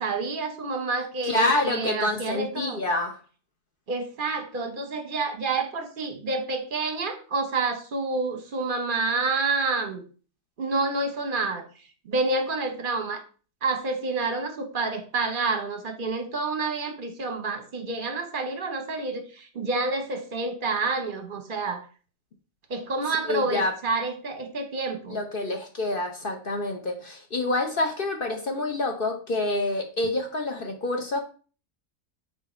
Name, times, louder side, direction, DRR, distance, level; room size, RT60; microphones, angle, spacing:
voice 1, 0.0-2.8 3.9-10.0 10.6-11.6 12.1-13.2 13.6-21.8 22.7-25.2, right 3 dB, 40° right, 7 dB, 0.9 m, -28 dB
voice 2, 1.2-3.2 23.3-23.7 25.1-31.2, left 2 dB, 45° left, 4 dB, 0.8 m, -27 dB
6.3 x 3.9 x 4.3 m, 0.38 s
omnidirectional pair, 1.6 m